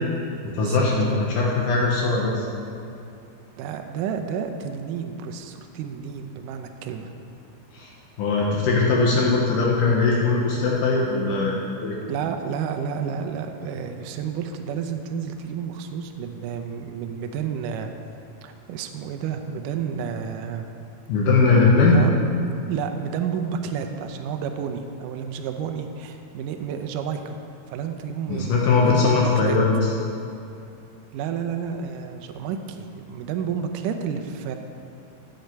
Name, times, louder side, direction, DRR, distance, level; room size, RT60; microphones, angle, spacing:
voice 1, 0.5-2.4 7.7-7.9 8.2-12.0 21.1-22.0 28.3-29.7, left 3 dB, 65° left, -3 dB, 2.3 m, -20 dB
voice 2, 3.6-7.1 12.1-17.9 18.4-20.7 21.8-22.1 22.7-27.4 27.7-29.6 31.1-34.6, right 7 dB, 85° right, 6 dB, 1.9 m, -31 dB
12.5 x 7.8 x 4.6 m, 2.6 s
omnidirectional pair, 4.5 m